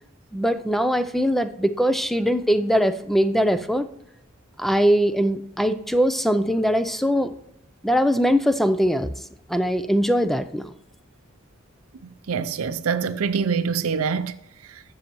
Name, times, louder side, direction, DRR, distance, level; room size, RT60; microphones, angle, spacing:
voice 1, 0.3-3.9 4.6-7.3 7.8-9.1 9.5-10.7, equal, ahead, 0.4 m, -21 dB
voice 2, 12.3-14.3, right 6 dB, 85° right, 0.5 m, -24 dB
12.5 x 7.7 x 3.0 m
head